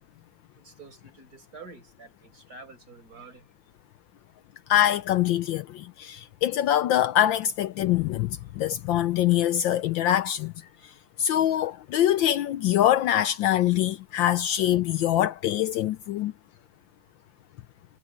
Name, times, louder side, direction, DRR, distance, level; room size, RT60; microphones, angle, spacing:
voice 1, 0.6-3.4 8.1-8.2, right 3 dB, 45° right, 5.4 m, -48 dB
voice 2, 4.7-10.5 10.8-10.9 11.2-16.3, left 12 dB, 75° left, 1.2 m, -24 dB
omnidirectional pair, 2.4 m